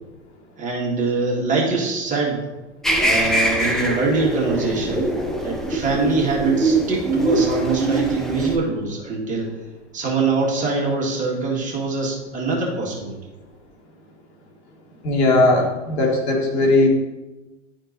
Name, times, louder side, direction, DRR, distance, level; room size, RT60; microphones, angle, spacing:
voice 1, 0.6-2.4 3.0-5.1 5.4-9.5 9.9-13.2, right 3 dB, 20° right, -2 dB, 1.8 m, -23 dB
sound 1, 2.8-8.6, right 2 dB, ahead, 0.5 m, -22 dB
voice 2, 15.0-16.9, left 2 dB, 60° left, 0 dB, 2.4 m, -18 dB
11.0 x 4.5 x 4.0 m, 1.1 s
hypercardioid pair, 125°, 37 cm